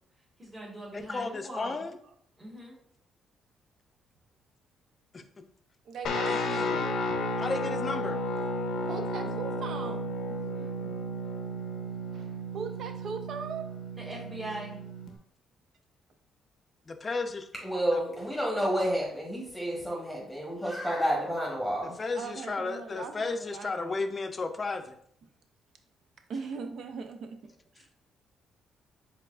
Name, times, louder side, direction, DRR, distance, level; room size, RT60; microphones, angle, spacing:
voice 1, 0.4-1.8 2.4-2.8 9.2-9.3 10.3-10.9 14.0-14.8, right 1 dB, 25° right, 1.5 m, -42 dB
voice 2, 0.9-1.9 5.1-5.2 6.3-6.9 7.4-8.2 16.9-17.5 17.9-18.0 21.8-25.0, left 3 dB, 35° left, 0.4 m, -34 dB
voice 3, 5.8-6.5 7.1-7.2 8.8-10.2 12.1-13.7 22.2-23.9 26.3-27.4 27.7-27.9, right 5 dB, 70° right, 0.5 m, -39 dB
Guitar, 6.0-15.2, left 1 dB, 80° left, 0.6 m, -33 dB
voice 4, 17.6-22.0, equal, 5° left, 1.1 m, -30 dB
4.5 x 3.5 x 2.4 m
cardioid pair, 90°, 0 cm